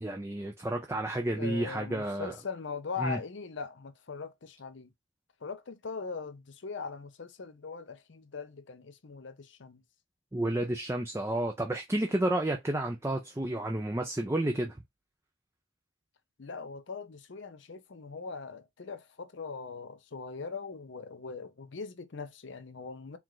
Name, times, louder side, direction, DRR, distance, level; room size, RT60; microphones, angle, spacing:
voice 1, 0.0-2.3 3.0-3.2 10.3-14.8, right 1 dB, 15° right, 0.4 m, -31 dB
voice 2, 1.3-4.9 5.4-9.8 16.4-23.2, left 5 dB, 65° left, 0.6 m, -41 dB
4.6 x 2.5 x 3.8 m
head